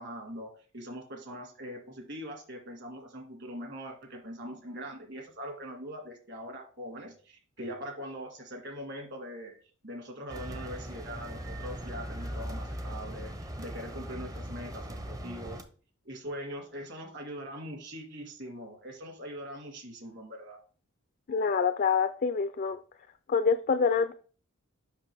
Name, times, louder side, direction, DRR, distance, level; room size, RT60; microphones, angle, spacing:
voice 1, 0.0-15.6 16.1-20.6, equal, 55° right, 1.9 m, -42 dB
sound 1, 10.3-15.6, equal, 15° right, 0.6 m, -39 dB
voice 2, 21.3-22.8 23.3-24.1, left 5 dB, 40° left, 0.3 m, -26 dB
7.4 x 5.7 x 3.4 m
head